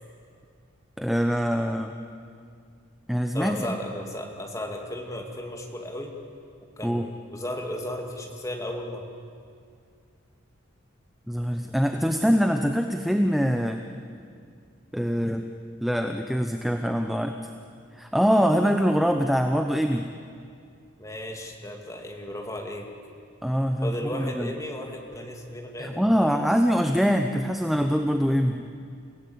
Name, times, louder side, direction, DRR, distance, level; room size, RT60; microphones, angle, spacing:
voice 1, 1.0-1.9 3.1-3.7 6.8-7.1 11.3-13.8 14.9-15.5 15.8-17.3 17.9-20.1 23.4-24.5 25.8-28.7, equal, ahead, 5 dB, 0.7 m, -24 dB
voice 2, 3.3-6.1 6.8-9.1 21.0-22.9 23.8-26.4, left 1 dB, 15° left, 1 dB, 2.4 m, -35 dB
28.5 x 17.0 x 8.6 m, 2.3 s
head